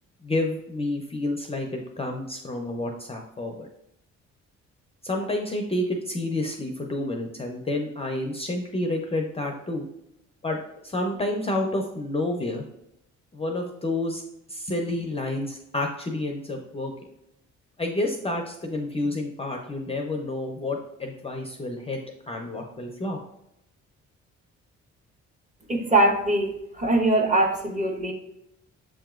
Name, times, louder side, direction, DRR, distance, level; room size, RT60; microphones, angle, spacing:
voice 1, 0.2-3.7 5.0-9.9 10.4-12.6 13.3-14.2 14.5-16.9 17.8-22.0 22.3-23.2, left 2 dB, 20° left, 2 dB, 0.5 m, -29 dB
voice 2, 25.7-28.1, right 2 dB, 25° right, 2 dB, 1.0 m, -22 dB
7.0 x 2.9 x 2.4 m, 0.81 s
cardioid pair, 90°, 30 cm